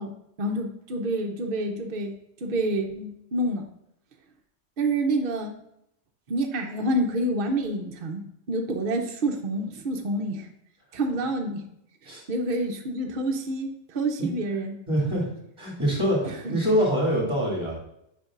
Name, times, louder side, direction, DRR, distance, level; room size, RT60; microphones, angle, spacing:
voice 1, 0.0-2.1 2.4-3.7 4.8-5.5 6.3-8.2 8.5-10.5 10.9-11.7 12.0-14.8 16.2-16.6, right 1 dB, 55° right, 3 dB, 0.8 m, -28 dB
voice 2, 14.9-15.3 15.6-17.7, equal, 25° right, -4 dB, 2.5 m, -24 dB
8.4 x 5.1 x 2.5 m, 0.78 s
omnidirectional pair, 1.2 m